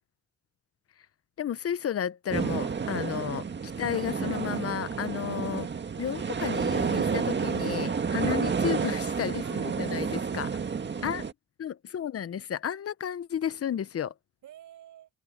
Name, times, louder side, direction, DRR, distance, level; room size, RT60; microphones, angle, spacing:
voice 1, 1.4-3.5 3.8-5.7 6.0-10.5 11.0-11.2 11.6-14.1, left 9 dB, 50° left, 1.0 m, -32 dB
sound 1, 2.3-11.3, right 6 dB, 35° right, 1.9 m, -30 dB
voice 2, 9.4-11.2 14.4-15.1, right 11 dB, 75° right, 7.5 m, -51 dB
open air
cardioid pair, 90°, 30 cm